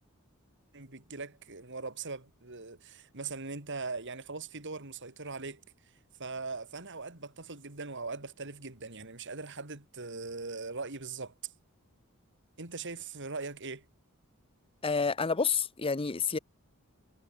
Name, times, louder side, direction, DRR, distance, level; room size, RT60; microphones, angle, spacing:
voice 1, 0.7-5.6 6.2-11.3 12.6-13.8, right 4 dB, 55° right, 3.2 m, -40 dB
voice 2, 14.8-16.4, left 5 dB, 25° left, 0.7 m, -29 dB
head